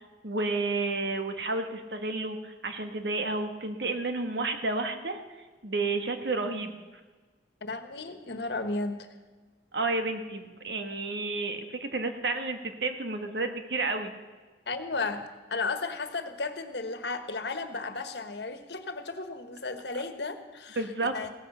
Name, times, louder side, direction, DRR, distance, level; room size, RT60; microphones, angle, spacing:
voice 1, 0.2-5.2 5.6-6.8 9.7-14.1 20.8-21.1, right 3 dB, 70° right, 6 dB, 1.6 m, -31 dB
voice 2, 7.6-9.1 14.7-21.3, left 3 dB, 70° left, 9 dB, 1.4 m, -34 dB
17.0 x 15.0 x 5.6 m, 1.3 s
head